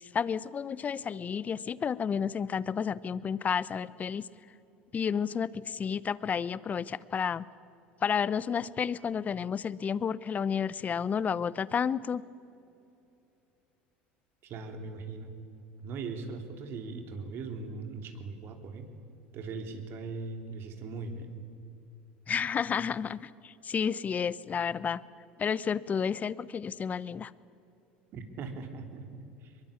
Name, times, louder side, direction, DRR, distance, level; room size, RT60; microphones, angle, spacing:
voice 1, 0.0-4.2 4.9-7.4 8.0-12.2 22.3-25.0 25.4-27.3, left 7 dB, 30° left, 19 dB, 0.8 m, -31 dB
voice 2, 14.4-15.3 15.8-18.9 19.3-21.4 28.1-29.6, right 4 dB, 55° right, 5 dB, 3.4 m, -40 dB
23.0 x 22.0 x 8.6 m, 2.7 s
hypercardioid pair, 85°, 5 cm